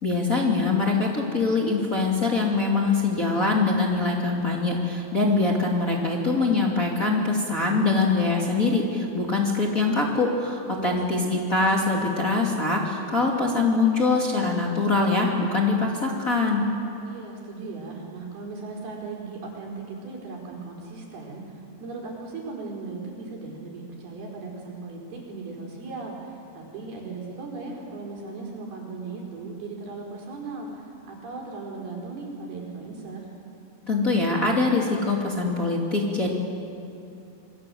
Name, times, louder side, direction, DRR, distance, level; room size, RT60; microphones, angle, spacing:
voice 1, 0.0-16.7 33.9-36.3, left 3 dB, 25° left, -2 dB, 2.4 m, -23 dB
voice 2, 10.8-11.3 17.0-33.3, right 3 dB, 80° right, -1 dB, 6.5 m, -37 dB
27.0 x 23.5 x 7.8 m, 2.7 s
omnidirectional pair, 4.4 m